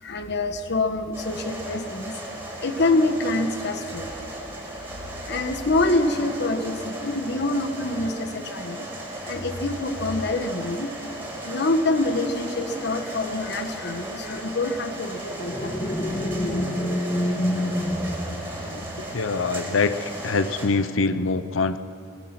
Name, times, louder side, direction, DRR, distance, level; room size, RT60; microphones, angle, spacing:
voice 1, 0.0-2.2 2.6-4.1 5.0-8.9 9.3-16.6, left 2 dB, 60° left, 7 dB, 1.3 m, -26 dB
sound 1, 1.1-20.7, right 1 dB, 15° right, 5.0 m, -36 dB
sound 2, 15.5-19.1, left 1 dB, 25° left, 1.7 m, -27 dB
voice 2, 19.1-21.8, left 4 dB, 85° left, 12 dB, 0.7 m, -24 dB
24.0 x 20.0 x 6.1 m, 2.7 s
head